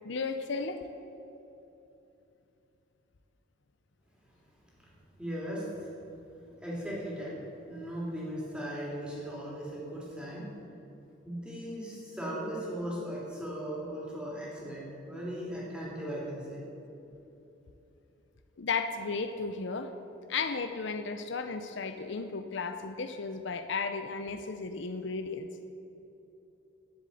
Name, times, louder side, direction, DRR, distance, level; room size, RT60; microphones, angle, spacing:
voice 1, 0.0-0.9 18.6-19.9 20.3-25.5, left 4 dB, 60° left, 8 dB, 0.6 m, -34 dB
voice 2, 5.2-5.9 6.6-7.3 7.7-10.5 11.2-16.6, equal, 5° right, -6 dB, 3.1 m, -38 dB
11.5 x 7.6 x 8.4 m, 2.9 s
head